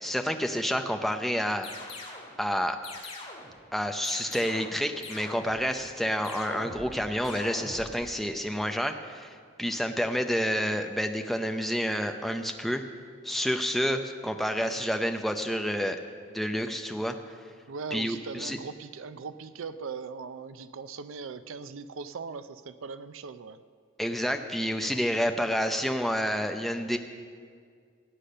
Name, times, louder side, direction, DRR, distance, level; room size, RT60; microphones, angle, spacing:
voice 1, 0.0-1.7 2.4-2.8 3.7-12.8 13.2-16.0 16.3-17.1 17.9-18.6 24.0-27.0, equal, ahead, 5 dB, 0.6 m, -29 dB
sound 1, 1.6-2.3 2.8-3.6 4.0-4.8 5.0-5.7 6.2-6.9 7.2-7.9, left 2 dB, 30° left, 2.0 m, -42 dB
voice 2, 17.7-23.6, right 5 dB, 90° right, 12 dB, 0.5 m, -39 dB
17.0 x 8.5 x 6.6 m, 2.1 s
head